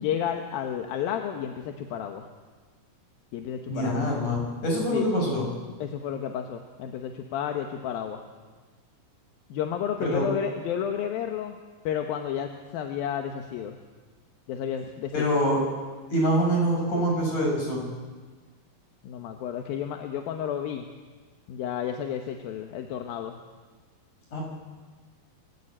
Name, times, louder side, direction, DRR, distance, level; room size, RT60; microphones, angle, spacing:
voice 1, 0.0-2.3 3.3-4.0 4.9-5.1 5.8-8.2 9.5-11.5 11.8-13.8 14.5-15.2 19.0-20.9 21.5-23.4, left 9 dB, 85° left, 4 dB, 3.0 m, -31 dB
voice 2, 3.7-5.5 10.0-10.2 15.1-15.6 16.1-17.8 24.3-24.4, equal, 55° left, -1 dB, 8.5 m, -25 dB
28.5 x 16.5 x 8.8 m, 1.4 s
omnidirectional pair, 4.1 m